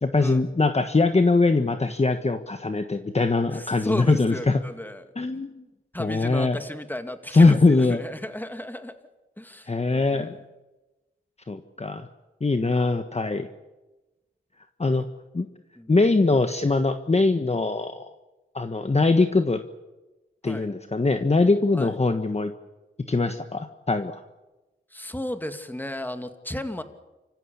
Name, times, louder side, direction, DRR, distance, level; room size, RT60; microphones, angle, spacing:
voice 1, 0.0-4.6 5.2-5.5 6.0-6.6 7.3-8.0 9.7-10.4 11.5-12.1 12.4-13.5 14.8-15.1 15.3-15.5 15.9-18.1 18.5-19.6 20.4-22.5 23.1-24.2, left 3 dB, 35° left, 8 dB, 1.4 m, -22 dB
voice 2, 3.5-5.0 5.9-8.9 9.4-10.4 15.8-15.9 20.4-20.7 21.7-21.9 24.9-26.8, left 1 dB, 10° left, 8 dB, 2.4 m, -34 dB
29.0 x 15.5 x 8.7 m, 1.1 s
cardioid pair, 60°, 19 cm